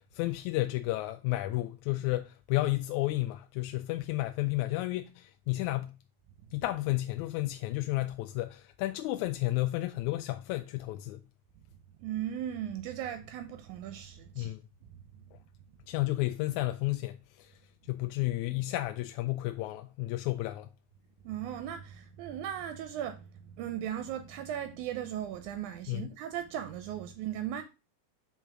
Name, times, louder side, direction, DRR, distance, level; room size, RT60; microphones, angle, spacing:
voice 1, 0.1-5.9 6.5-11.2 14.4-14.6 15.9-17.5 17.9-20.7 25.9-26.1, left 17 dB, 80° left, 1.8 m, -32 dB
voice 2, 12.0-14.5 15.1-15.2 21.2-23.3 23.6-27.6, right 10 dB, 80° right, 2.0 m, -37 dB
5.7 x 4.6 x 5.9 m
omnidirectional pair, 3.6 m